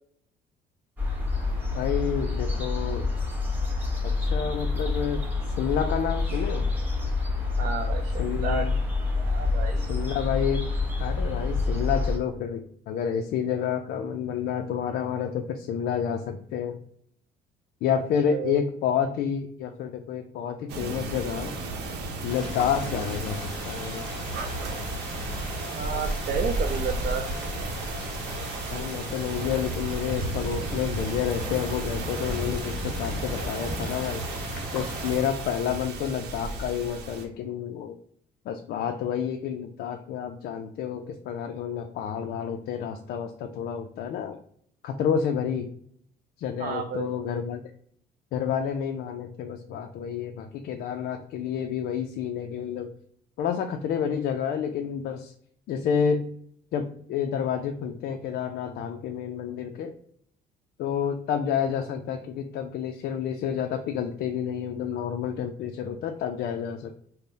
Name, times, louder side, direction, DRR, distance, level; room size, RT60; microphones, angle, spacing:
sound 1, 1.0-12.2, left 3 dB, 10° right, 1.1 m, -27 dB
voice 1, 1.7-3.1 4.0-6.7 8.2-8.7 9.8-10.6 11.0-16.8 17.8-21.5 22.2-24.1 28.7-34.2 34.7-38.0 38.5-44.4 44.8-45.7 46.4-47.6 48.3-52.9 53.4-55.3 55.7-56.3 56.7-59.9 60.8-66.9, left 8 dB, 65° left, 5 dB, 0.4 m, -29 dB
voice 2, 7.6-8.7 9.2-10.0 18.3-18.6 25.7-27.2 46.6-47.1, right 6 dB, 50° right, 3 dB, 0.5 m, -32 dB
sound 2, 20.7-37.3, right 2 dB, 80° right, 0.8 m, -33 dB
sound 3, 22.3-35.2, left 1 dB, 5° left, 1.5 m, -38 dB
3.7 x 2.0 x 3.9 m, 0.65 s
cardioid pair, 110°, 17 cm